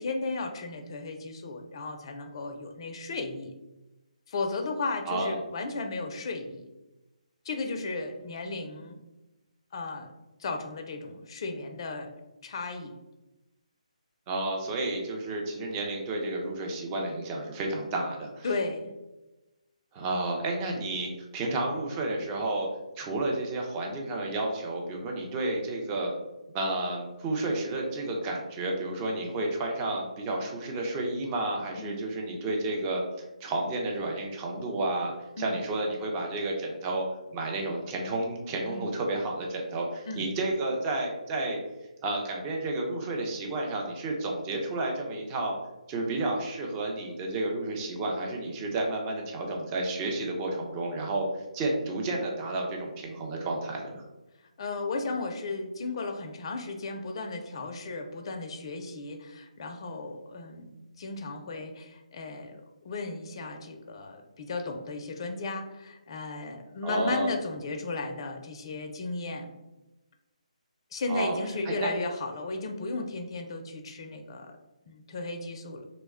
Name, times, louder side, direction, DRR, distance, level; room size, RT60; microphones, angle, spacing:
voice 1, 0.0-3.5 4.3-6.7 7.4-9.0 9.7-10.1 10.4-12.1 12.4-12.9 18.4-18.9 31.8-32.0 35.4-35.6 38.7-38.9 40.1-40.3 54.6-69.5 70.9-74.6 74.9-75.8, left 3 dB, 40° left, 4 dB, 0.4 m, -35 dB
voice 2, 5.1-5.4 14.3-18.5 19.9-22.7 23.0-26.1 26.5-37.1 37.3-41.6 42.0-45.6 45.9-54.0 66.8-67.3 71.1-71.4 71.6-72.0, right 2 dB, 20° right, 0 dB, 0.5 m, -31 dB
3.0 x 2.1 x 3.5 m, 1.0 s
figure-of-eight pair, 155°, 4 cm